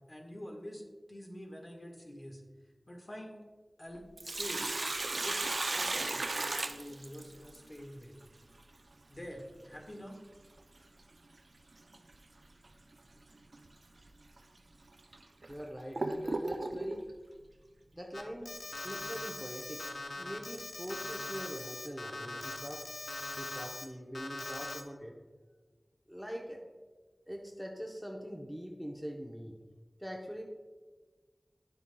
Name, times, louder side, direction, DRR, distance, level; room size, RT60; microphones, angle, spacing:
voice 1, 0.1-0.8 1.1-2.4 2.9-3.4 3.8-4.6 5.0-8.1 9.1-10.2, equal, 40° left, 0 dB, 1.5 m, -47 dB
Sink (filling or washing), 4.0-7.6 10.0-10.1 11.9-12.2 12.6-12.7 13.5-13.7 14.4-14.5 15.1-17.0, right 2 dB, 70° right, 0.5 m, -35 dB
voice 2, 15.5-17.0 17.9-19.8 20.2-22.9 23.4-25.2 26.1-26.6 27.3-29.6 30.0-30.4, equal, ahead, 0 dB, 0.8 m, -43 dB
Alarm, 18.1-23.8 24.1-24.8, left 2 dB, 70° left, 0.7 m, -41 dB
10.0 x 7.1 x 2.3 m, 1.4 s
wide cardioid pair, 50°, 0 cm